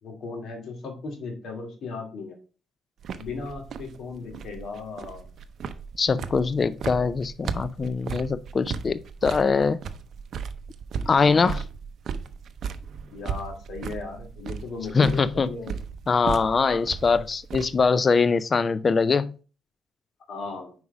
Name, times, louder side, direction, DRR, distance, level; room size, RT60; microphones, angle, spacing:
voice 1, 0.0-2.4 3.2-5.3 11.2-11.6 13.1-15.8 20.3-20.7, left 4 dB, 65° left, 2.2 m, -36 dB
sound 1, 3.0-17.9, right 6 dB, 60° right, 0.6 m, -36 dB
voice 2, 6.0-9.8 11.1-11.6 14.9-15.5 16.1-19.3, left 4 dB, 35° left, 0.4 m, -22 dB
5.4 x 4.7 x 4.9 m
cardioid pair, 90°, 0 cm